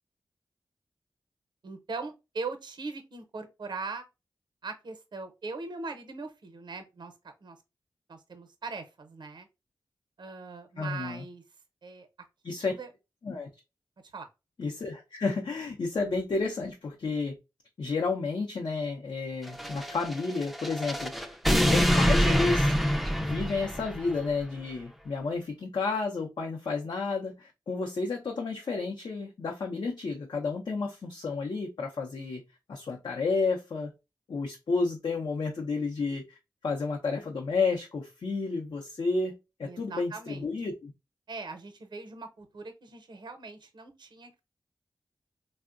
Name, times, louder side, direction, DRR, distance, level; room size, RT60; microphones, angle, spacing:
voice 1, 1.6-4.1 4.6-7.6 8.1-9.5 10.2-11.4 11.8-12.1 12.5-12.9 14.1-14.3 39.6-40.5 41.3-44.4, right 4 dB, 65° right, 0.7 m, -40 dB
voice 2, 10.8-11.2 12.4-12.7 13.2-13.5 14.6-17.4 17.8-22.8 23.2-32.4 32.7-33.9 34.3-40.9, left 4 dB, 70° left, 0.6 m, -31 dB
sound 1, 19.5-24.2, equal, ahead, 0.4 m, -26 dB
3.5 x 2.1 x 2.4 m
cardioid pair, 50°, 8 cm